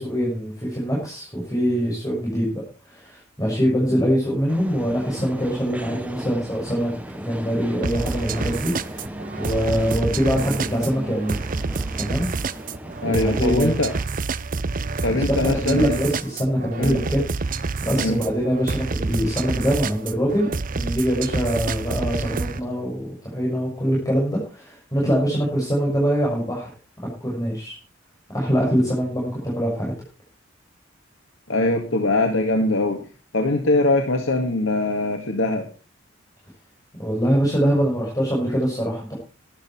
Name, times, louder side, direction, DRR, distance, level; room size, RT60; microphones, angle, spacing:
voice 1, 0.0-11.4 12.0-12.3 13.0-13.7 15.3-26.7 27.2-27.8 28.3-29.9 37.0-39.1, equal, 20° left, -4 dB, 6.5 m, -24 dB
sound 1, 4.5-14.1, equal, 5° right, 1.3 m, -37 dB
sound 2, 7.8-22.6, right 4 dB, 45° right, 0.7 m, -28 dB
voice 2, 13.0-13.9 15.0-16.0 16.8-17.0 17.9-18.2 31.5-33.0 33.3-35.7, left 2 dB, 80° left, 3 dB, 2.0 m, -22 dB
13.5 x 11.5 x 4.4 m, 0.34 s
head